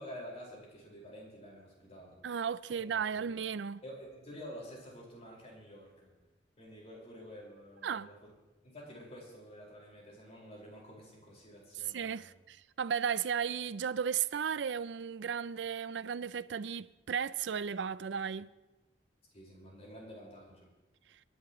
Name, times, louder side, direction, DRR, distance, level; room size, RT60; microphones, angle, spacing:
voice 1, 0.0-2.2 2.7-3.3 3.8-6.1 6.6-8.3 8.6-12.4 19.3-20.7, equal, 35° left, 5.1 m, -49 dB
voice 2, 2.2-3.8 7.8-8.1 11.9-18.5, right 7 dB, 75° right, 0.4 m, -35 dB
28.5 x 11.0 x 3.1 m
head